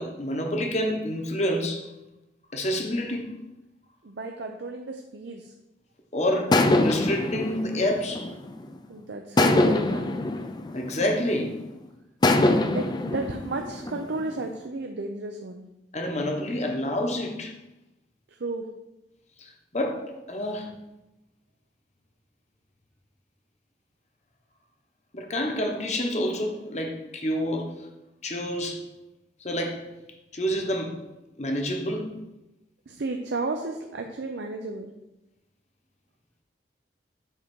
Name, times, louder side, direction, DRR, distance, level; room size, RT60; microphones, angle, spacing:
voice 1, 0.0-1.9 2.5-3.4 6.1-8.3 10.7-11.7 15.9-17.5 19.4-20.7 25.1-27.9 28.2-28.9 29.4-29.9 30.3-31.1 31.4-32.2, left 1 dB, 40° left, 1.0 m, -28 dB
voice 2, 4.0-5.5 8.9-10.2 12.7-15.6 18.4-18.7 32.9-34.9, right 3 dB, 75° right, 0.6 m, -33 dB
sound 1, 6.5-8.8 9.4-11.5 12.2-14.5, left 2 dB, 25° left, 0.4 m, -24 dB
7.9 x 3.8 x 6.1 m
head